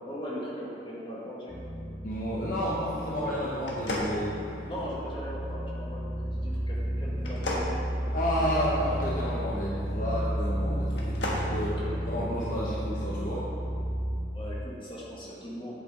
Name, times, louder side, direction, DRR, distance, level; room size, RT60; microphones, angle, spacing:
voice 1, 0.0-1.5 3.0-3.5 4.7-7.8 8.4-8.7 11.5-12.4 14.3-15.7, equal, 30° left, -6 dB, 1.9 m, -39 dB
sound 1, 1.5-14.2, equal, 10° left, 1.6 m, -33 dB
voice 2, 2.0-4.3 8.1-13.5, equal, 50° left, -6 dB, 1.1 m, -31 dB
sound 2, 3.6-5.0 7.2-8.8 10.8-11.5, left 1 dB, 90° left, 1.4 m, -34 dB
8.4 x 8.0 x 3.8 m, 2.9 s
head